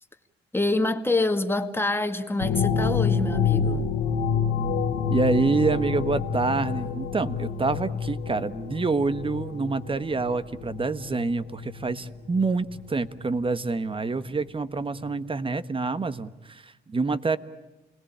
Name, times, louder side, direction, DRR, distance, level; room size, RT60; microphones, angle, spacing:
voice 1, 0.5-3.9, left 2 dB, 10° left, 2.1 m, -26 dB
sound 1, 2.4-12.9 13.5-13.6, left 6 dB, 85° left, 2.7 m, -28 dB
voice 2, 5.1-17.4, right 3 dB, 25° right, 1.3 m, -27 dB
29.0 x 20.0 x 8.8 m
cardioid pair, 90°, 20 cm